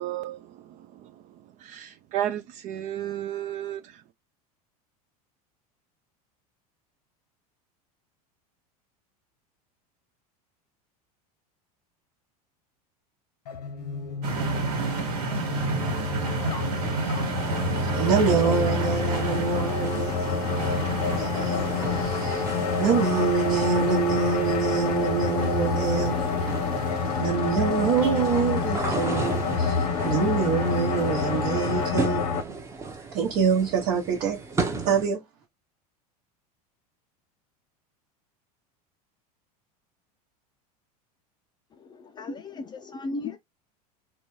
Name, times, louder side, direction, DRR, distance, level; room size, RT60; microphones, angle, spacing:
voice 1, 0.0-1.3 1.6-4.0, right 11 dB, 40° right, 0.4 m, -33 dB
sound 1, 13.5-32.4, left 5 dB, 85° left, 1.0 m, -28 dB
sound 2, 14.2-31.9, right 3 dB, 90° right, 1.5 m, -33 dB
sound 3, 17.3-35.1, right 3 dB, 15° right, 0.7 m, -37 dB
voice 2, 17.9-22.5 22.8-26.5 27.2-32.6 33.1-34.4 34.8-35.2, right 6 dB, 60° right, 1.0 m, -26 dB
voice 3, 41.8-43.4, left 3 dB, 20° left, 0.5 m, -36 dB
4.0 x 2.3 x 3.1 m
supercardioid pair, 115°, 19 cm